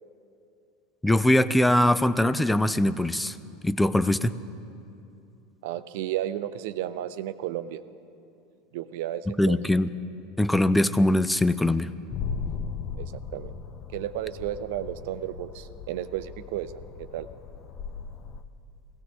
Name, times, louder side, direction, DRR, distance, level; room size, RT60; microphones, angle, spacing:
voice 1, 1.0-3.4 3.6-4.4 9.4-9.9 10.4-11.9, left 1 dB, 5° left, 15 dB, 0.4 m, -22 dB
voice 2, 5.6-7.8 8.7-9.6 13.0-13.5 13.9-17.3, right 12 dB, 65° right, 13 dB, 0.5 m, -33 dB
sound 1, 12.1-18.4, left 6 dB, 45° left, 0.6 m, -37 dB
17.0 x 16.0 x 3.5 m, 2.6 s
hypercardioid pair, 85°, 0 cm